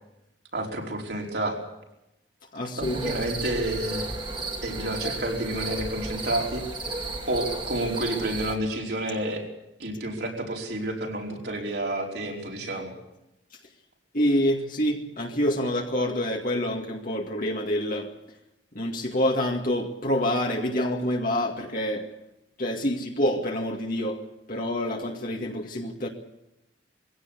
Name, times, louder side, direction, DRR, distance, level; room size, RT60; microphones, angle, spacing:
voice 1, 0.5-1.6 2.8-4.1 4.6-6.7 7.3-9.4 9.8-12.9, right 1 dB, 60° right, 5.0 m, -30 dB
voice 2, 2.5-3.2 14.1-18.1 18.8-22.1 22.6-24.2 24.5-26.1, left 1 dB, 45° left, 2.2 m, -27 dB
sound 1, 2.8-8.6, right 2 dB, 25° right, 2.5 m, -33 dB
22.5 x 16.5 x 8.3 m
head